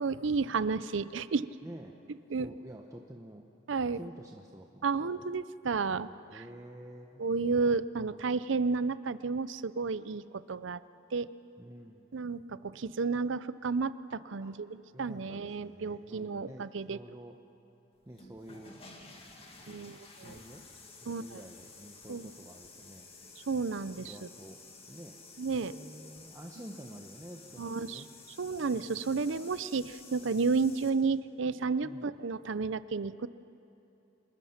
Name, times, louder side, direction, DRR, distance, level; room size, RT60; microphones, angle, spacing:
voice 1, 0.0-1.5 2.3-2.5 3.7-4.0 4.8-6.4 7.2-10.8 11.1-11.3 12.1-17.0 19.7-20.4 21.1-21.4 22.1-22.3 23.5-24.3 25.4-25.7 27.6-28.0 28.4-33.3, right 4 dB, 65° right, 16 dB, 0.6 m, -32 dB
voice 2, 1.6-1.9 2.4-3.4 4.0-5.2 5.9-7.2 8.0-8.5 11.6-12.1 14.4-14.6 14.9-17.4 18.1-18.7 19.4-20.6 21.0-23.1 24.1-24.6 24.9-25.2 25.5-28.1 28.7-29.0 30.5-30.6 31.8-32.1, right 1 dB, 15° right, 1 dB, 0.9 m, -49 dB
sound 1, 18.0-30.9, left 3 dB, 30° left, 2.0 m, -53 dB
26.5 x 20.5 x 5.8 m, 3.0 s
head